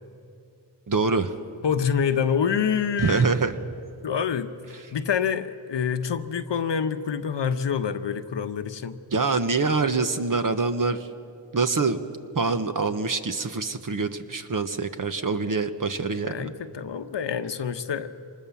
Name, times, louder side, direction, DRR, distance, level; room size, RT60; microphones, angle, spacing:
voice 1, 0.9-1.4 3.0-3.5 9.1-11.0 11.5-12.0 12.3-16.5, right 4 dB, 40° right, 8 dB, 1.3 m, -25 dB
voice 2, 1.6-3.3 4.0-4.5 4.9-9.0 16.2-18.1, left 7 dB, 60° left, 9 dB, 1.1 m, -26 dB
25.0 x 20.0 x 7.2 m, 2.5 s
cardioid pair, 65°, 47 cm